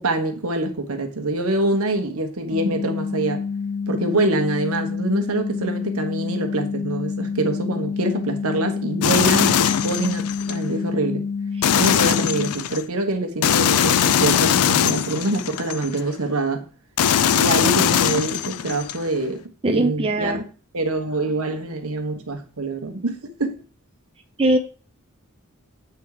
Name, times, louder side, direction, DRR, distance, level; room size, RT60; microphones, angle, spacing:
voice 1, 0.0-3.4 3.9-11.3 11.7-16.7 17.3-20.5 20.7-23.6, right 2 dB, 70° right, 1.2 m, -25 dB
sound 1, 2.5-12.5, left 5 dB, 35° left, 0.5 m, -28 dB
sound 2, 9.0-10.6 11.6-12.8 13.4-16.0 17.0-19.0, left 9 dB, 80° left, 0.4 m, -20 dB
voice 2, 19.6-20.4 24.4-24.6, right 2 dB, 25° right, 0.5 m, -20 dB
7.8 x 3.5 x 4.8 m
head